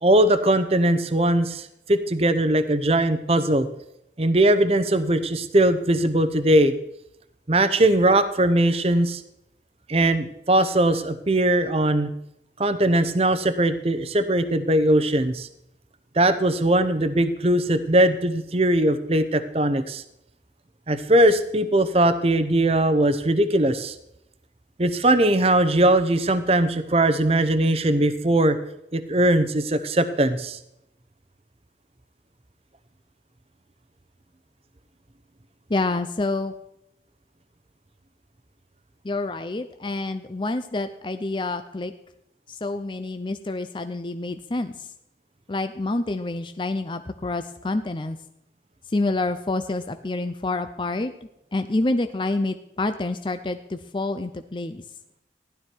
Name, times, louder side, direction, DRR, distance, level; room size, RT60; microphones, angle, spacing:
voice 1, 0.0-3.7 4.2-6.7 7.5-9.2 9.9-12.1 12.6-15.5 16.1-20.0 20.9-23.9 24.8-28.6 28.9-30.6, right 1 dB, 35° right, 11 dB, 0.8 m, -20 dB
voice 2, 35.7-36.5 39.0-41.9 42.5-44.9 45.5-48.2 48.9-51.1 51.5-54.8, left 2 dB, 25° left, 9 dB, 0.5 m, -27 dB
15.5 x 11.5 x 4.6 m, 0.80 s
head